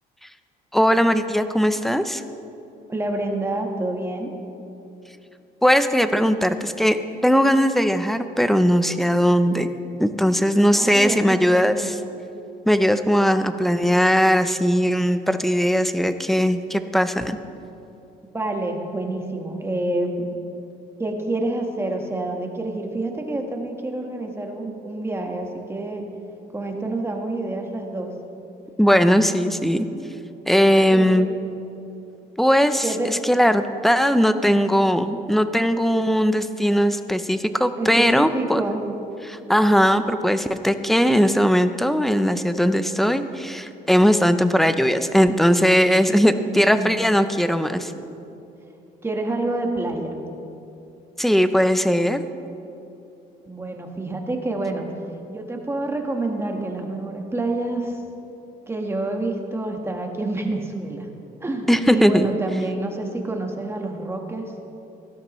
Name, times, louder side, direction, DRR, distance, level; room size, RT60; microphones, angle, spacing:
voice 1, 0.7-2.2 5.6-7.0 7.2-9.7 10.0-11.9 12.7-17.4 28.8-29.9 30.5-31.3 32.4-38.6 39.3-47.9 51.2-52.2 61.7-62.3, equal, ahead, 10 dB, 0.5 m, -19 dB
voice 2, 2.9-4.3 10.7-11.9 18.3-20.3 21.0-26.1 26.5-28.1 30.9-31.4 32.8-33.1 37.8-38.8 46.5-46.9 49.0-50.1 53.4-54.9 55.3-58.0 58.7-61.1 61.4-64.5, right 2 dB, 15° right, 2 dB, 1.4 m, -28 dB
17.0 x 12.5 x 3.1 m, 2.8 s
cardioid pair, 110°, 17 cm